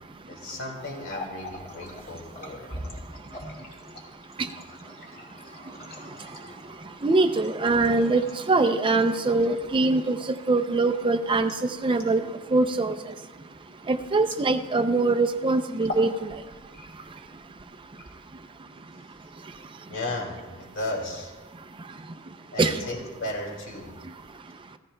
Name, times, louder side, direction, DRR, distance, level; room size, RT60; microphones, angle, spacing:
voice 1, 0.3-2.7 19.9-21.3 22.5-24.0, left 2 dB, 65° left, 0 dB, 2.5 m, -35 dB
Water tap faucet, 0.9-14.9 15.2-15.4 15.7-16.2 16.5-17.2 17.8-18.6, left 1 dB, 45° left, 2.2 m, -43 dB
voice 2, 7.0-8.2 8.5-10.2 10.5-11.5 11.8-12.2 12.5-12.9 13.9-16.3 22.6-22.8, right 3 dB, 25° right, 8 dB, 0.4 m, -22 dB
15.5 x 14.5 x 2.2 m, 1.3 s
head